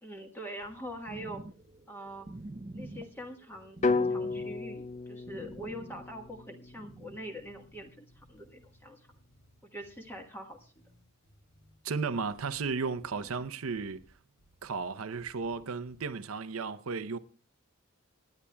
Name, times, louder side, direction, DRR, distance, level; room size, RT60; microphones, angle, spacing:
voice 1, 0.0-1.4 1.9-2.3 2.7-9.1 9.6-10.7 13.1-13.4, equal, 10° left, 1.3 m, -44 dB
sound 1, 0.6-16.1, equal, 55° left, 7.6 m, -63 dB
sound 2, 1.1-6.5 6.7-7.2, right 2 dB, 25° right, 0.5 m, -47 dB
sound 3, 3.8-7.9, left 3 dB, 35° left, 0.5 m, -34 dB
voice 2, 11.8-14.0 14.6-17.2, right 4 dB, 85° right, 0.7 m, -34 dB
25.5 x 10.0 x 2.2 m
head